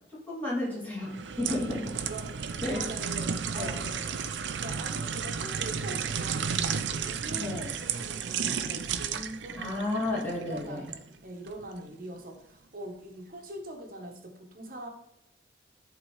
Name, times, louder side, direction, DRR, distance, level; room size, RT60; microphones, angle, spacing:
voice 1, 0.1-1.9 2.6-2.8 3.5-3.7 7.3-7.7 9.5-10.9, left 1 dB, 10° left, -7 dB, 2.4 m, -32 dB
sound 1, 1.1-11.0 11.5-11.7, right 7 dB, 90° right, 0.5 m, -33 dB
voice 2, 1.9-9.9 10.1-14.9, right 1 dB, 50° right, 2 dB, 1.1 m, -43 dB
11.0 x 3.8 x 3.2 m, 0.85 s
head